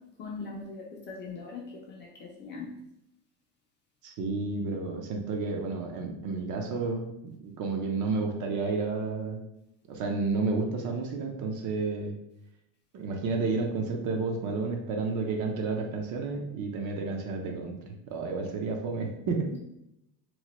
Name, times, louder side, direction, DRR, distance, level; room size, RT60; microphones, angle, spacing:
voice 1, 0.2-2.7 19.5-19.6, left 4 dB, 25° left, -2 dB, 0.4 m, -41 dB
voice 2, 4.0-7.1 7.4-9.4 9.9-12.2 12.9-17.8 18.1-19.5, right 4 dB, 45° right, 2 dB, 0.5 m, -31 dB
3.0 x 2.1 x 2.9 m, 0.84 s
cardioid pair, 140°, 44 cm